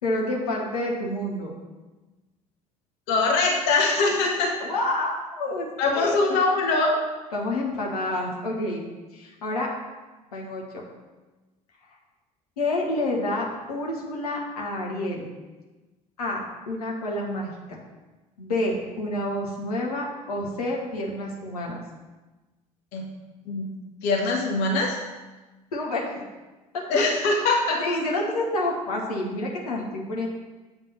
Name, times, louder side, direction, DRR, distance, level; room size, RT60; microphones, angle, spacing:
voice 1, 0.0-1.5 4.6-5.7 5.9-6.4 7.3-8.8 9.1-9.7 10.3-10.6 12.6-15.3 16.2-17.5 18.4-21.8 25.7-26.2 26.7-26.8 27.4-30.3, left 1 dB, 75° left, -2 dB, 1.2 m, -28 dB
voice 2, 3.1-4.6 5.8-7.0 22.9-23.0 23.5-23.7 24.0-25.0 26.9-27.8, left 3 dB, 60° left, 0 dB, 1.1 m, -22 dB
8.0 x 3.6 x 5.7 m, 1.2 s
figure-of-eight pair, 60°, 20 cm